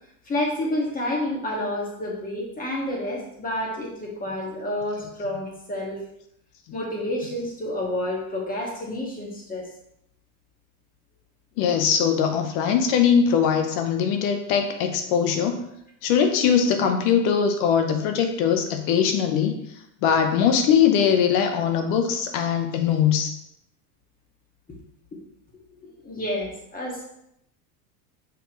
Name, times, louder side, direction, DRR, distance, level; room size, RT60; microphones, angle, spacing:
voice 1, 0.3-6.0 6.7-9.7 25.8-27.0, left 1 dB, 20° left, -2 dB, 2.0 m, -29 dB
voice 2, 11.6-15.6 16.0-19.5 20.0-23.3, left 7 dB, 65° left, 6 dB, 1.0 m, -21 dB
5.9 x 5.7 x 3.1 m, 0.77 s
supercardioid pair, 120°, 45 cm